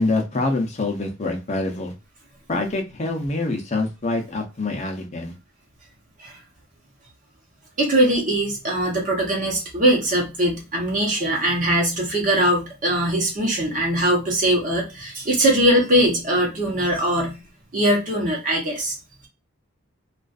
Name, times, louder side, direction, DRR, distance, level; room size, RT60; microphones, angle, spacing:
voice 1, 0.0-1.9 2.5-5.3, left 2 dB, 35° left, 0.6 m, -25 dB
voice 2, 7.8-17.4 17.7-18.9, right 1 dB, 40° right, 0.9 m, -21 dB
2.4 x 2.4 x 2.3 m
head